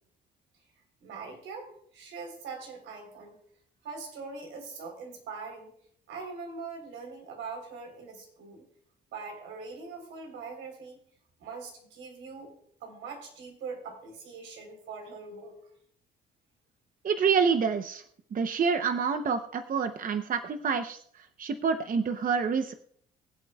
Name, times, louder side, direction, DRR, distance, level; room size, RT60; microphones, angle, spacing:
voice 1, 1.0-3.4 3.8-5.7 6.1-8.6 9.1-11.0 11.4-12.5 12.8-15.6, right 4 dB, 85° right, 2 dB, 3.8 m, -42 dB
voice 2, 17.0-18.0 18.3-22.7, right 6 dB, 45° right, 8 dB, 0.7 m, -27 dB
24.0 x 8.0 x 2.3 m, 0.64 s
cardioid pair, 90°, 20 cm